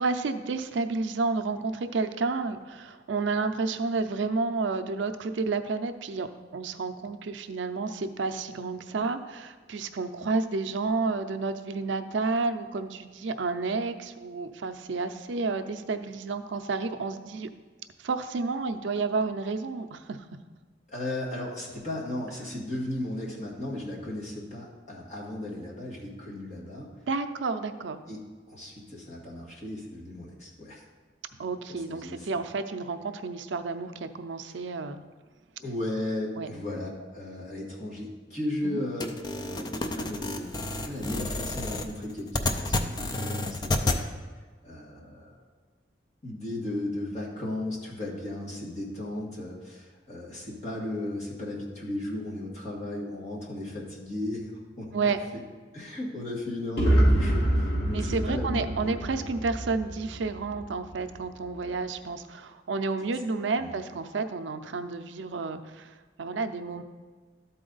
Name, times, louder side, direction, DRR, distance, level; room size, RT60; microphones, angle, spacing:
voice 1, 0.0-6.3 6.5-17.5 18.0-20.2 27.1-28.0 31.4-35.0 36.4-36.5 38.6-38.8 54.9-55.2 57.9-66.8, right 4 dB, 80° right, 9 dB, 0.5 m, -30 dB
voice 2, 20.9-26.9 28.1-30.9 31.7-32.3 35.6-39.1 39.3-44.1 44.6-45.4 46.2-54.5 54.8-55.1 55.7-59.0 63.5-63.7, left 1 dB, 40° left, -4 dB, 1.8 m, -35 dB
sound 1, 39.0-44.0, left 2 dB, 25° left, 0.4 m, -30 dB
sound 2, 56.8-60.7, right 1 dB, 60° left, 1.7 m, -25 dB
12.5 x 4.2 x 3.9 m, 1.4 s
head